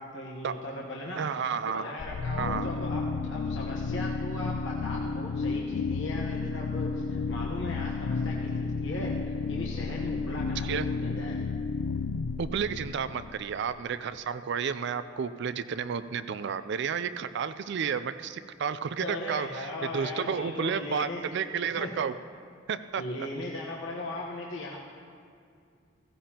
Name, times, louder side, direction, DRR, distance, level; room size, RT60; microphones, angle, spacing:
voice 1, 0.0-1.2 1.7-11.4 19.0-21.2 21.7-21.9 23.0-24.8, left 1 dB, 65° left, -3 dB, 1.1 m, -38 dB
voice 2, 1.2-1.8 2.4-2.7 10.6-10.9 12.4-22.1 22.7-23.0, right 6 dB, 60° right, 12 dB, 0.4 m, -31 dB
sound 1, 2.0-13.8, left 4 dB, 85° left, 0.4 m, -32 dB
16.5 x 15.5 x 2.9 m, 2.3 s
head